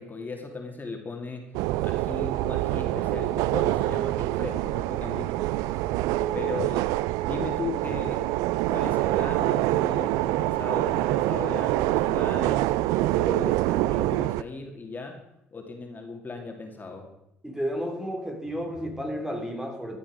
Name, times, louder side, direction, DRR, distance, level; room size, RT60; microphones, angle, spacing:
voice 1, 0.0-1.5 1.8-5.5 6.3-6.8 7.2-15.2 15.5-17.1, left 3 dB, 30° left, 2 dB, 2.7 m, -37 dB
sound 1, 1.5-14.4, right 17 dB, 70° right, 0.3 m, -25 dB
voice 2, 17.4-20.0, equal, 5° right, 3 dB, 2.9 m, -32 dB
14.5 x 9.9 x 5.0 m, 0.84 s
hypercardioid pair, 55°, 6 cm